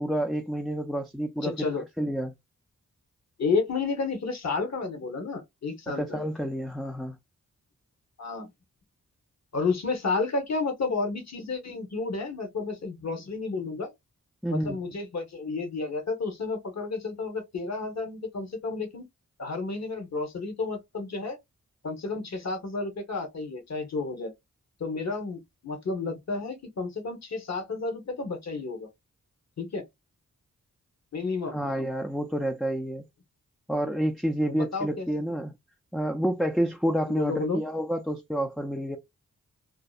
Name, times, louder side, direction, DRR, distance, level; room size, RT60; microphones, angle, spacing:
voice 1, 0.0-1.6 2.0-2.3 6.0-7.2 14.4-14.8 31.5-33.0 33.7-35.5 35.9-39.0, equal, ahead, 0.3 m, -29 dB
voice 2, 1.4-1.8 3.4-6.2 8.2-8.5 9.5-13.9 14.5-19.0 19.4-21.4 21.8-24.3 24.8-28.9 29.6-29.8 31.1-31.6 34.5-35.1 37.1-37.6, left 4 dB, 55° left, 1.0 m, -31 dB
2.7 x 2.1 x 2.3 m
cardioid pair, 50°, 32 cm